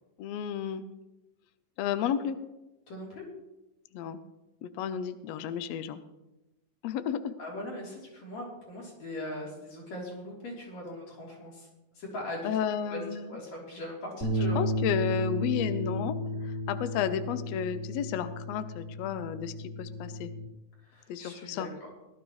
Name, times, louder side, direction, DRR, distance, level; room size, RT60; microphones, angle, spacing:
voice 1, 0.2-0.8 1.8-2.4 3.9-4.2 4.6-6.0 6.8-7.3 12.4-13.4 14.5-16.2 16.4-20.3 21.1-21.7, left 8 dB, 85° left, 11 dB, 1.4 m, -32 dB
voice 2, 2.9-3.2 7.4-11.7 11.9-14.6 20.8-21.9, left 1 dB, 55° left, -4 dB, 4.7 m, -40 dB
sound 1, 14.2-20.5, left 1 dB, 25° left, 2.7 m, -33 dB
18.0 x 12.0 x 3.1 m, 0.99 s
omnidirectional pair, 3.8 m